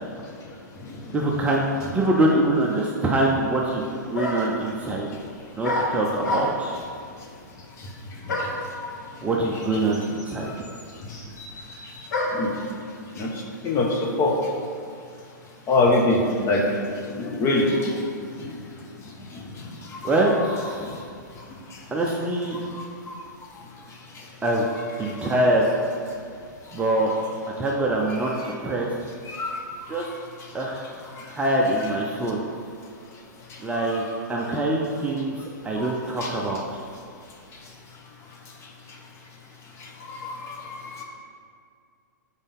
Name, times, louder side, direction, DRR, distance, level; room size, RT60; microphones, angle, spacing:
voice 1, 1.1-1.7 1.9-5.1 5.5-6.8 9.2-10.7 20.0-21.1 21.9-22.6 24.4-24.7 25.0-25.7 26.7-27.1 27.6-28.9 29.9-30.1 30.5-30.9 31.3-32.4 33.6-34.0 34.3-36.8, right 1 dB, 15° right, -2 dB, 0.6 m, -24 dB
sound 1, 3.7-3.8 4.1-4.6 5.6-6.8 8.3-8.7 9.6-9.7 9.9-12.5, left 1 dB, 65° left, 1.5 m, -28 dB
voice 2, 13.6-14.3 15.7-16.6 17.1-17.9 20.3-20.4 29.3-29.6 29.9-30.0 33.8-34.0 36.2-36.3 40.2-41.0, left 2 dB, 25° left, -1 dB, 1.1 m, -23 dB
5.4 x 4.1 x 5.4 m, 2.3 s
hypercardioid pair, 115°, 10 cm